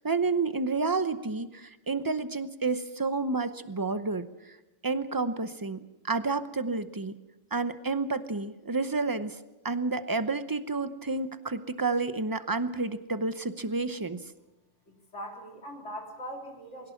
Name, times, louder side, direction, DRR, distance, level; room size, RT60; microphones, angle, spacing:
voice 1, 0.0-4.3 4.8-7.2 7.5-9.4 9.6-14.2, right 3 dB, 20° right, 12 dB, 0.7 m, -30 dB
voice 2, 14.9-16.9, equal, 70° left, 1 dB, 3.7 m, -41 dB
22.0 x 17.0 x 7.1 m, 1.0 s
omnidirectional pair, 1.3 m